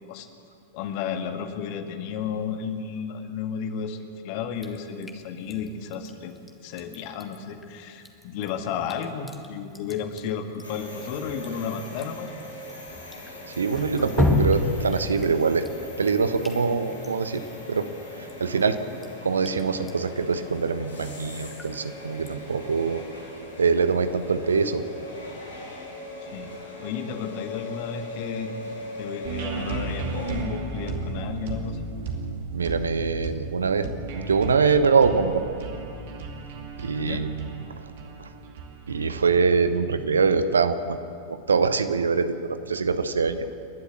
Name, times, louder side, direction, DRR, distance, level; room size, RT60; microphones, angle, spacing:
voice 1, 0.7-6.3 6.6-12.3 26.2-26.5 26.8-28.5 29.0-31.9 37.0-37.2, left 7 dB, 45° left, 7 dB, 1.8 m, -33 dB
Drip, 4.6-22.8, left 3 dB, 10° left, 1.9 m, -35 dB
sound 1, 10.6-30.4, left 2 dB, 80° left, 6.5 m, -40 dB
voice 2, 13.6-15.6 16.0-17.4 17.7-17.9 18.4-18.8 19.2-23.0 23.6-24.8 32.5-33.9 34.1-35.4 36.8-37.6 38.2-38.3 38.9-41.0 41.3-43.5, right 5 dB, 70° right, 11 dB, 1.0 m, -23 dB
sound 2, 29.2-41.0, right 3 dB, 55° right, 2.5 m, -35 dB
29.5 x 12.0 x 7.9 m, 2.5 s
figure-of-eight pair, 90°, 0 cm